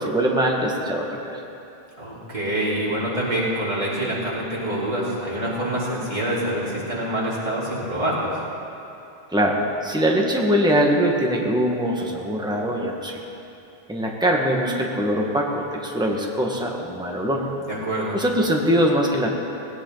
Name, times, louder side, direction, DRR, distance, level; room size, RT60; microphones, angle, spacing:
voice 1, 0.0-1.4 9.3-13.2 13.9-17.5 18.1-19.3, equal, 5° right, -1 dB, 1.6 m, -22 dB
voice 2, 2.0-8.4 17.7-18.2, right 1 dB, 45° right, -7 dB, 3.9 m, -26 dB
19.0 x 18.0 x 4.0 m, 2.8 s
omnidirectional pair, 1.1 m